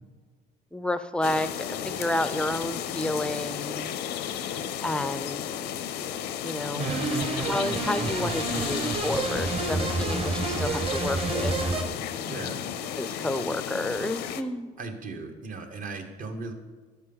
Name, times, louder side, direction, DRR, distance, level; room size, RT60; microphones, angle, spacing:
voice 1, 0.7-4.0 4.3-5.4 6.4-6.9 7.4-11.6 13.0-14.7, left 1 dB, 5° left, 12 dB, 0.4 m, -31 dB
sound 1, 1.2-14.4, left 9 dB, 85° left, 0.6 m, -33 dB
voice 2, 6.7-7.1 12.3-12.6 14.8-16.5, right 3 dB, 55° right, 5 dB, 1.2 m, -36 dB
sound 2, 6.8-11.8, right 3 dB, 35° right, 1.1 m, -29 dB
12.0 x 5.8 x 3.9 m, 1.4 s
cardioid pair, 110°, 17 cm